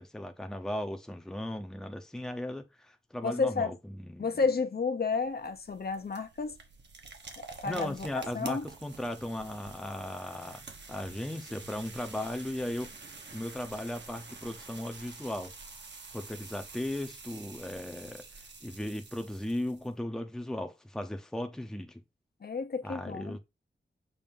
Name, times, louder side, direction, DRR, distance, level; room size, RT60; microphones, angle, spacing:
voice 1, 0.0-4.4 7.6-10.6 10.9-12.9 13.3-15.5 16.1-18.2 18.6-22.0 22.8-23.4, left 1 dB, 5° left, 0.7 m, -37 dB
voice 2, 3.2-3.8 4.2-6.6 7.4-8.7 22.4-23.4, left 4 dB, 50° left, 0.8 m, -31 dB
sound 1, 5.1-19.9, right 3 dB, 60° right, 1.2 m, -48 dB
6.9 x 2.7 x 5.4 m
wide cardioid pair, 105°, 20 cm